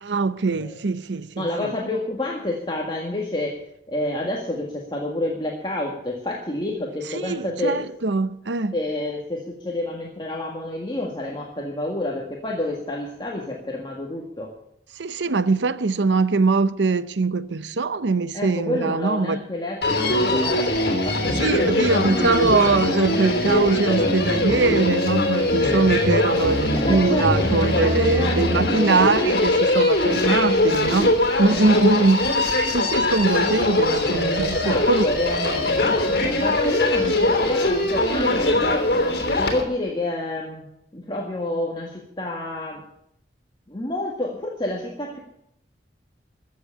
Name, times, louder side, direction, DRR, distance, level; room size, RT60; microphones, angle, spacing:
voice 1, 0.0-1.7 7.0-8.8 14.9-19.4 21.2-32.3 32.7-35.0 35.9-36.0, right 3 dB, 85° right, 0.7 m, -22 dB
voice 2, 1.4-3.6 3.9-7.8 8.7-14.5 18.3-22.3 26.7-29.3 30.2-30.4 31.4-32.1 34.4-38.9 39.3-40.6 40.9-42.8 43.7-45.2, left 1 dB, 25° left, 1.7 m, -29 dB
Human voice, 19.8-39.6, left 1 dB, 60° left, 3.2 m, -21 dB
14.5 x 7.7 x 9.8 m
head